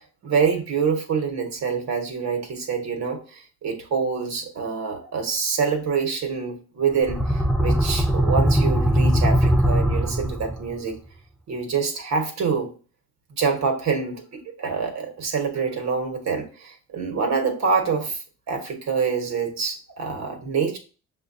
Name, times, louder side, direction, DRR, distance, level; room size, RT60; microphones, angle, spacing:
voice 1, 0.2-11.0 11.5-12.7 13.3-18.2 18.5-20.8, right 5 dB, 65° right, 3 dB, 1.2 m, -26 dB
sound 1, 6.9-10.7, equal, ahead, 0.4 m, -20 dB
6.6 x 2.3 x 2.7 m, 0.36 s
cardioid pair, 90°, 30 cm